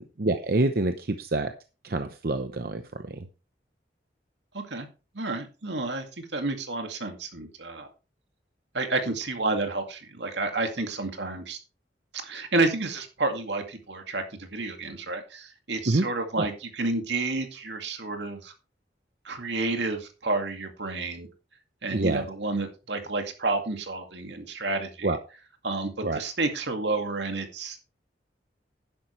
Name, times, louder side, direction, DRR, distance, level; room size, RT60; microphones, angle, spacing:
voice 1, 0.0-1.5 1.8-3.3 15.9-16.1 16.4-16.5 21.9-22.3 25.0-25.2 26.0-26.2, right 2 dB, 55° right, 8 dB, 0.8 m, -27 dB
voice 2, 4.5-4.9 5.1-7.9 8.7-11.6 12.1-18.5 19.2-21.3 21.8-25.1 25.6-27.9, right 3 dB, 75° right, 5 dB, 2.2 m, -30 dB
11.5 x 10.5 x 3.2 m, 0.33 s
head